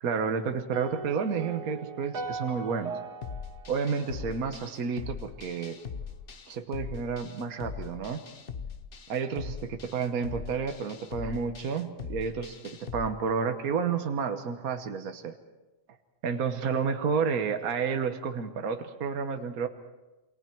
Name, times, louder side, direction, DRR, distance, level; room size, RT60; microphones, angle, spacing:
voice 1, 0.0-3.0 3.7-5.8 6.5-8.2 9.1-15.4 16.2-19.7, right 6 dB, 60° right, 7 dB, 1.6 m, -30 dB
sound 1, 0.7-5.0, right 4 dB, 80° right, 2.6 m, -40 dB
sound 2, 3.2-13.1, left 6 dB, 40° left, 0.9 m, -41 dB
28.0 x 23.5 x 4.6 m, 1.1 s
omnidirectional pair, 1.7 m